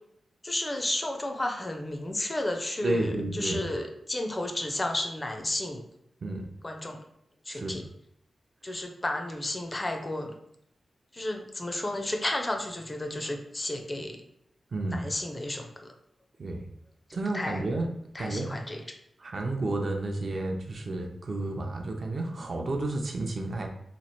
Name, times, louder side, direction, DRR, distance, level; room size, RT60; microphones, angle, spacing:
voice 1, 0.4-5.8 6.6-7.0 7.5-7.8 8.6-10.3 11.1-14.2 14.9-15.9 17.3-17.7 18.1-19.0, left 1 dB, 20° left, 4 dB, 0.4 m, -32 dB
voice 2, 2.8-3.6 6.2-6.5 7.5-7.8 14.7-15.0 16.4-16.6 17.1-17.9 18.2-18.5 19.2-23.7, right 2 dB, 50° right, 2 dB, 0.6 m, -31 dB
3.0 x 2.4 x 4.2 m, 0.75 s
wide cardioid pair, 100°, 0 cm